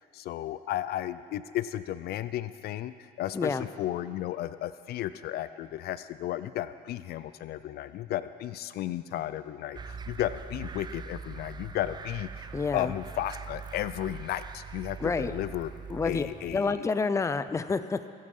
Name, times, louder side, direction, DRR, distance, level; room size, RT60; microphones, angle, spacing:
voice 1, 0.0-15.7 16.0-16.9, left 13 dB, 70° left, 14 dB, 0.5 m, -34 dB
voice 2, 3.3-3.7 12.5-12.9 15.0-15.3 15.9-16.3 16.5-18.1, left 4 dB, 15° left, 12 dB, 0.6 m, -28 dB
sound 1, 9.7-16.6, right 5 dB, 25° right, 0.5 m, -42 dB
23.5 x 8.6 x 5.5 m, 2.3 s
cardioid pair, 110°, 17 cm